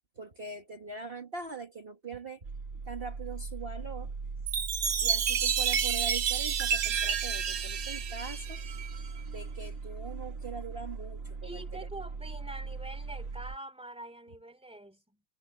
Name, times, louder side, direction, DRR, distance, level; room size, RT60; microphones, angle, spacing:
voice 1, 0.2-2.4 2.9-4.1 5.0-8.6 9.3-11.9, right 4 dB, 45° right, 1.8 m, -42 dB
sound 1, 2.4-13.6, right 4 dB, 65° right, 2.2 m, -39 dB
Chime, 4.5-9.1, right 8 dB, 90° right, 1.4 m, -30 dB
voice 2, 11.4-15.2, right 1 dB, 5° right, 2.7 m, -45 dB
omnidirectional pair, 1.5 m